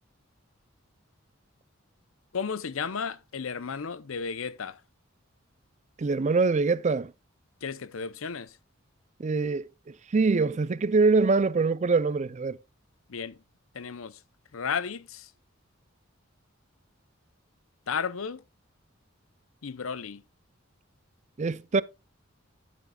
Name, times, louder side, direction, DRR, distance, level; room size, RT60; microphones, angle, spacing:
voice 1, 2.3-4.8 7.6-8.5 13.1-13.4 13.7-14.1 14.5-15.3 17.9-18.4 19.6-20.2, left 6 dB, 80° left, 0.7 m, -33 dB
voice 2, 6.0-7.1 9.2-9.7 10.1-12.6 21.4-21.8, right 4 dB, 35° right, 0.4 m, -24 dB
12.5 x 9.3 x 2.3 m
head